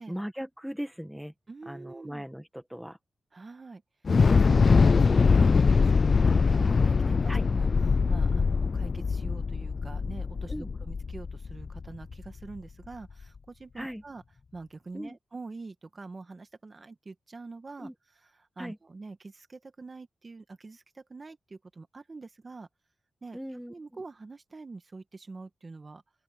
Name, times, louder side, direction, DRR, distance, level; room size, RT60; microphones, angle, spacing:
voice 1, 0.1-1.3 1.7-2.4 2.7-3.0 7.3-7.4 10.5-10.7 13.8-14.0 14.9-15.2 17.8-17.9 18.6-18.8 23.3-23.7, equal, 5° right, 1.7 m, -37 dB
voice 2, 1.5-2.3 3.3-3.8 4.1-14.2 14.5-22.7 23.2-26.0, right 3 dB, 35° right, 1.9 m, -45 dB
Thunder / Explosion, 4.0-12.3, left 5 dB, 50° left, 0.4 m, -23 dB
open air
cardioid pair, 90°, 0 cm